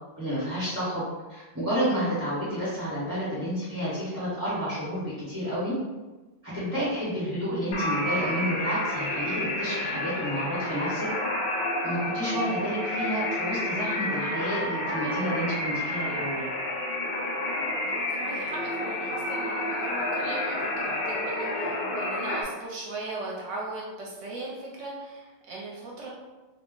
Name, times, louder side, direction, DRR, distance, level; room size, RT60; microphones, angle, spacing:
voice 1, 0.2-5.7 6.4-11.1 11.8-16.4, equal, 10° right, -12 dB, 1.0 m, -30 dB
sound 1, 7.7-22.4, left 1 dB, 50° left, 0.6 m, -30 dB
voice 2, 17.9-26.1, right 2 dB, 80° right, -3 dB, 1.0 m, -38 dB
2.5 x 2.1 x 3.6 m, 1.2 s
omnidirectional pair, 1.3 m